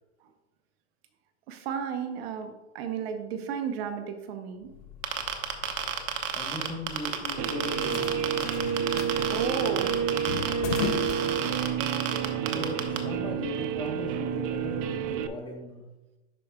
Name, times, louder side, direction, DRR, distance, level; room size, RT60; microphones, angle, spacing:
voice 1, 1.5-4.7 9.3-10.0, right 7 dB, 55° right, 7 dB, 0.9 m, -33 dB
sound 1, 4.6-12.0, left 8 dB, 45° left, 0.6 m, -39 dB
sound 2, 5.0-13.0, right 9 dB, 80° right, 1.1 m, -30 dB
voice 2, 6.3-8.1 12.5-15.8, left 2 dB, 10° left, 2 dB, 1.1 m, -38 dB
Guitar, 7.4-15.3, right 7 dB, 35° right, 0.4 m, -30 dB
11.0 x 4.9 x 2.3 m, 1.1 s
hypercardioid pair, 130°, 36 cm